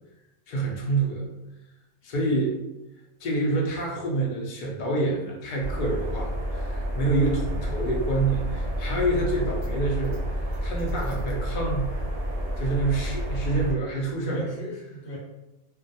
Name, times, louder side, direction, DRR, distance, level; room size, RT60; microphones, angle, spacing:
voice 1, 0.5-1.3 2.0-2.5 3.2-12.0 12.6-14.4, right 2 dB, 85° left, -2 dB, 0.4 m, -27 dB
sound 1, 5.6-13.7, equal, 75° right, 0.3 m, -30 dB
voice 2, 14.3-15.2, equal, 55° left, -4 dB, 0.9 m, -37 dB
2.3 x 2.1 x 2.6 m, 0.97 s
omnidirectional pair, 1.5 m